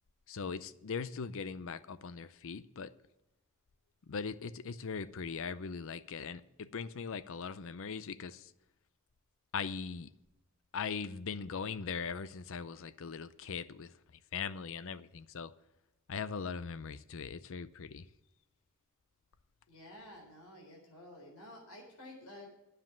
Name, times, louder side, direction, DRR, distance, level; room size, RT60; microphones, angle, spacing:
voice 1, 0.3-2.9 4.1-8.5 9.5-10.1 10.7-13.9 14.3-15.5 16.1-18.1, left 5 dB, 60° left, 15 dB, 0.5 m, -40 dB
voice 2, 19.7-22.5, left 1 dB, 80° left, -1 dB, 4.0 m, -51 dB
9.5 x 7.6 x 7.4 m, 0.94 s
head